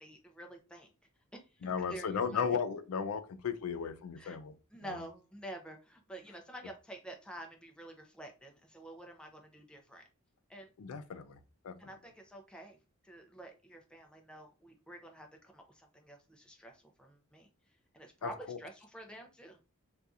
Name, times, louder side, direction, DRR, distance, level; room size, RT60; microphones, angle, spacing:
voice 1, 0.0-0.9 1.3-2.6 4.2-4.4 4.7-10.0 10.5-10.7 11.8-12.8 13.0-17.5 17.9-19.6, right 1 dB, 5° left, 3 dB, 0.6 m, -49 dB
voice 2, 1.6-4.5 4.8-5.0 10.8-11.4 11.6-11.7 18.2-18.6, left 6 dB, 85° left, 10 dB, 0.4 m, -35 dB
2.7 x 2.4 x 3.6 m, 0.30 s
head